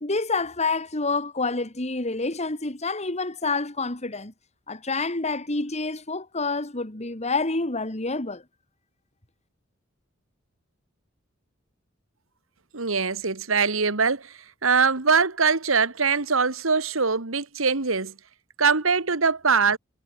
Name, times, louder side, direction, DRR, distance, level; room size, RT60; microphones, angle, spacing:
voice 1, 0.0-4.3 4.7-8.4, left 3 dB, 35° left, 2.5 m, -28 dB
voice 2, 12.7-14.3 14.6-18.1 18.6-19.8, right 5 dB, 90° right, 1.9 m, -22 dB
head